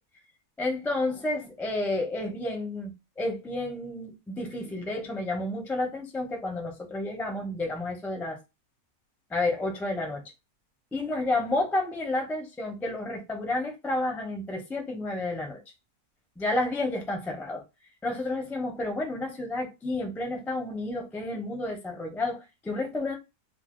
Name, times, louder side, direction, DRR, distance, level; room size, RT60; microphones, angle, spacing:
voice 1, 0.6-8.4 9.3-10.2 10.9-15.6 16.4-17.6 18.0-23.1, left 2 dB, 5° left, 0.3 m, -31 dB
2.7 x 2.1 x 3.6 m
omnidirectional pair, 1.6 m